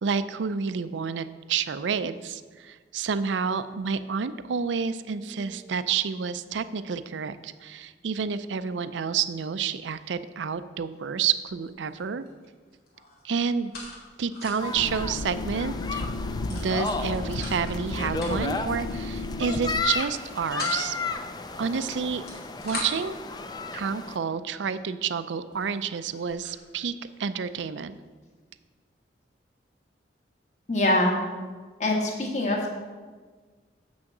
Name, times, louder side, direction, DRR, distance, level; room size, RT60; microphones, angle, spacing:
voice 1, 0.0-12.2 13.2-13.7 14.2-16.0 16.5-20.9 21.6-22.2 22.6-23.1 23.7-26.9 27.2-28.0, right 6 dB, 90° right, 13 dB, 0.4 m, -29 dB
sound 1, 11.0-11.3 11.6-12.5 12.7-14.8 15.2-15.3 15.5-15.7 16.5-17.8 18.1-18.6 19.4-19.7 20.1-20.9 22.0-23.1 23.9-24.0 24.6-24.7 25.2-25.3 25.5-26.6, left 2 dB, 55° left, 2.3 m, -40 dB
sound 2, 14.6-24.2, left 3 dB, 25° left, 0.4 m, -34 dB
sound 3, 14.8-19.8, left 2 dB, 85° left, 0.6 m, -33 dB
voice 2, 30.7-31.2 31.8-32.7, left 1 dB, 40° left, 0 dB, 1.5 m, -24 dB
7.5 x 6.2 x 6.0 m, 1.4 s
head